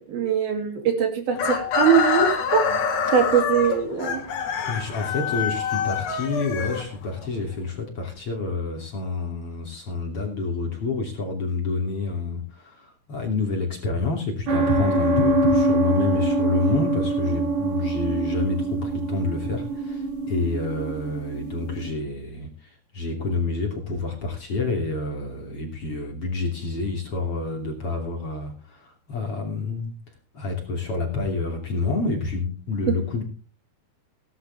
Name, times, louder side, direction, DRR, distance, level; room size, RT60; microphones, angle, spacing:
voice 1, 0.0-2.6 3.1-4.2, right 7 dB, 65° right, 5 dB, 4.5 m, -22 dB
Chicken rooster, 1.3-7.3, left 6 dB, 65° left, 4.1 m, -26 dB
voice 2, 4.6-29.9 30.3-33.2, left 3 dB, 35° left, 2 dB, 3.4 m, -28 dB
sound 1, 14.5-21.9, right 2 dB, 45° right, 3.4 m, -24 dB
17.5 x 11.5 x 3.5 m, 0.36 s
omnidirectional pair, 4.7 m